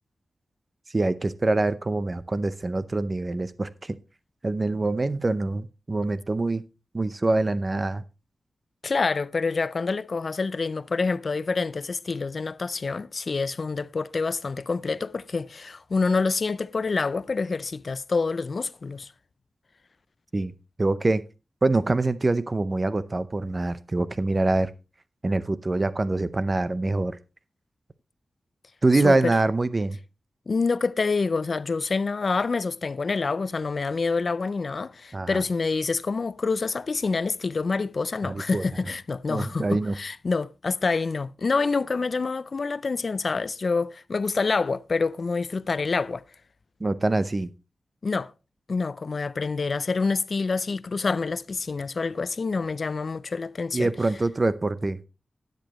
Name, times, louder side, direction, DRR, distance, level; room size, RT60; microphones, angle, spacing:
voice 1, 0.9-3.9 4.4-6.6 6.9-8.0 20.3-20.5 20.8-21.2 21.6-24.7 25.2-27.2 28.8-30.0 35.1-35.4 38.2-38.6 39.3-40.0 46.8-47.5 53.7-55.1, right 2 dB, 30° right, 0.6 m, -25 dB
voice 2, 8.8-19.1 29.0-29.3 30.5-46.2 48.0-48.3 48.7-53.9, left 4 dB, 45° left, 0.4 m, -27 dB
12.5 x 9.2 x 3.0 m
wide cardioid pair, 150°, 0 cm